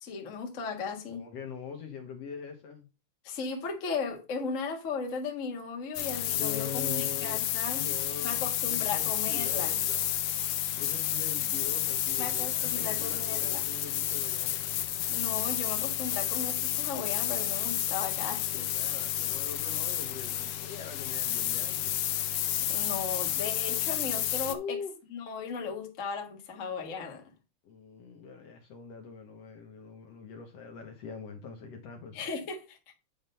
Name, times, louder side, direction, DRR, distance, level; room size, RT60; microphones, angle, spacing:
voice 1, 0.0-1.2 3.2-7.8 8.2-9.8 12.2-13.6 15.1-18.7 22.7-24.8 25.1-27.2 32.1-32.8, left 5 dB, 40° left, 1.2 m, -36 dB
voice 2, 1.1-2.9 6.4-7.4 7.7-10.1 10.8-14.6 18.1-21.8 24.4-24.9 27.7-32.3, left 6 dB, 65° left, 1.8 m, -43 dB
sound 1, 5.9-24.5, left 12 dB, 80° left, 1.4 m, -31 dB
9.2 x 3.7 x 5.5 m
omnidirectional pair, 3.7 m